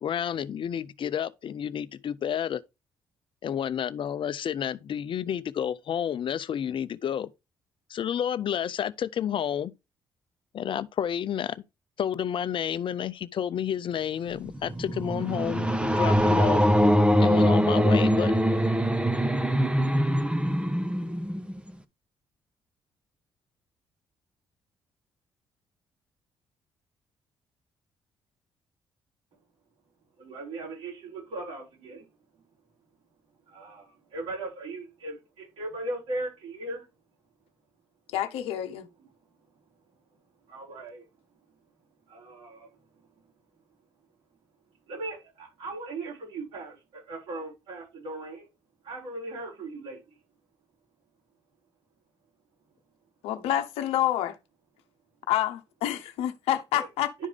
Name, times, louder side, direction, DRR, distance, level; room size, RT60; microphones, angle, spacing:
voice 1, 0.0-2.6 3.4-7.3 7.9-9.7 10.5-11.6 12.0-16.6 17.2-18.3, left 9 dB, 55° left, 0.7 m, -30 dB
sound 1, 14.4-21.7, equal, 10° right, 1.0 m, -23 dB
voice 2, 30.2-32.0 33.5-36.8 39.0-39.1 40.5-41.0 42.1-42.7 44.9-48.5 48.8-50.2 56.7-56.9 57.2-57.3, right 2 dB, 75° right, 6.1 m, -38 dB
voice 3, 38.1-38.9 53.2-54.3 55.3-57.1, left 12 dB, 70° left, 0.9 m, -28 dB
11.0 x 4.9 x 3.4 m
hypercardioid pair, 45°, 11 cm